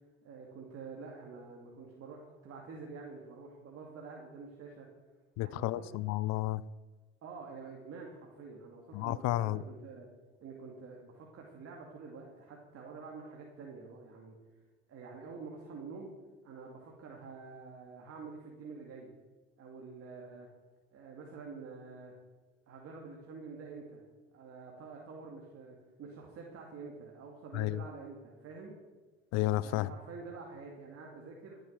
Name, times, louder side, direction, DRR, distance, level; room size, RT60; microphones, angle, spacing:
voice 1, 0.2-4.9 5.4-5.9 7.2-10.1 10.4-14.3 14.9-16.1 16.4-19.1 19.6-20.5 20.9-22.1 22.7-24.0 24.3-28.8 29.6-31.6, right 4 dB, 50° right, -1 dB, 2.5 m, -47 dB
voice 2, 5.4-6.6 8.9-9.6 27.5-27.8 29.3-29.9, left 16 dB, 60° left, 20 dB, 0.5 m, -31 dB
14.5 x 7.9 x 7.5 m, 1.3 s
hypercardioid pair, 65°, 30 cm